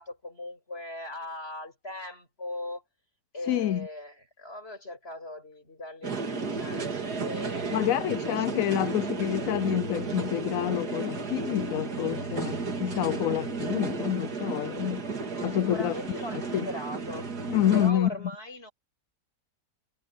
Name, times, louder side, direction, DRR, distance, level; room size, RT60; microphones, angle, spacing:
voice 1, 0.0-2.8 3.3-8.5 15.3-17.3 17.7-18.7, left 1 dB, 35° left, 8.3 m, -39 dB
voice 2, 3.5-3.9 7.7-15.0 15.4-16.7 17.5-18.1, left 12 dB, 65° left, 0.9 m, -28 dB
sound 1, 6.0-17.9, right 4 dB, 70° right, 2.7 m, -33 dB
omnidirectional pair, 1.8 m